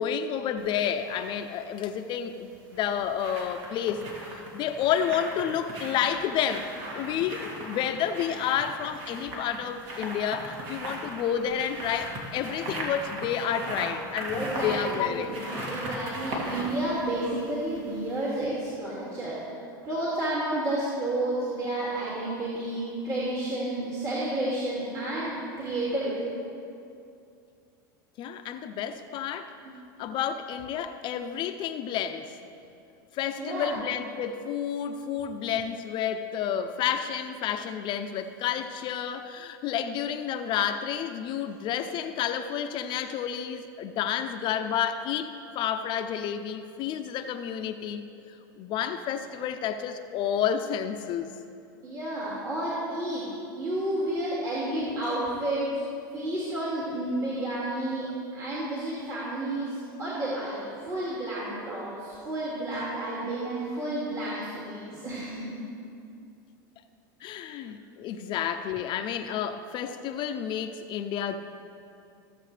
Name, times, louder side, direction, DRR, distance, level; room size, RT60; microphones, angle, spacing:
voice 1, 0.0-15.4 22.3-22.4 28.2-29.5 30.0-32.4 33.1-51.3 54.1-54.3 67.2-71.4, left 9 dB, 45° left, 8 dB, 0.6 m, -30 dB
sound 1, 0.6-1.3 2.5-18.1 18.4-18.5, right 1 dB, 55° right, 2.5 m, -38 dB
voice 2, 14.3-19.4 19.8-25.3 25.6-26.1 29.6-29.7 33.4-33.8 51.8-55.8 56.1-58.1 58.3-65.6, right 1 dB, 30° right, -7 dB, 2.4 m, -31 dB
15.5 x 7.4 x 3.3 m, 2.5 s
hypercardioid pair, 105°, 11 cm